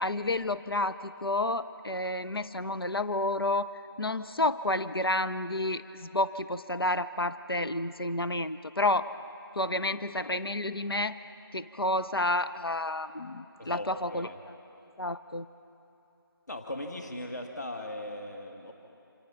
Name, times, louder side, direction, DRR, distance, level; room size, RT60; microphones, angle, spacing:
voice 1, 0.0-3.7 4.0-9.1 9.6-11.2 11.5-14.3 15.0-15.5, left 2 dB, 75° left, 12 dB, 0.8 m, -30 dB
voice 2, 13.6-14.4 16.5-18.7, left 1 dB, 45° left, 3 dB, 2.0 m, -38 dB
29.0 x 27.0 x 5.8 m, 2.9 s
figure-of-eight pair, 165°, 13 cm